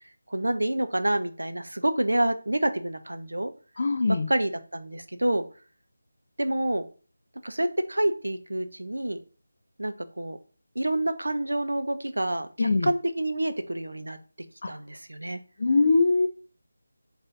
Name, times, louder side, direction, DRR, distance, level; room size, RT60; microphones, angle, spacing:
voice 1, 0.3-3.5 4.3-5.4 6.4-6.8 7.4-9.2 9.8-10.4 10.8-14.2 14.7-15.4, right 1 dB, 90° right, 9 dB, 0.5 m, -28 dB
voice 2, 3.8-4.3 12.6-12.9 14.6-14.7 15.6-16.3, left 3 dB, 50° left, 5 dB, 0.3 m, -22 dB
4.3 x 3.4 x 2.6 m, 0.38 s
figure-of-eight pair, 165°, 0 cm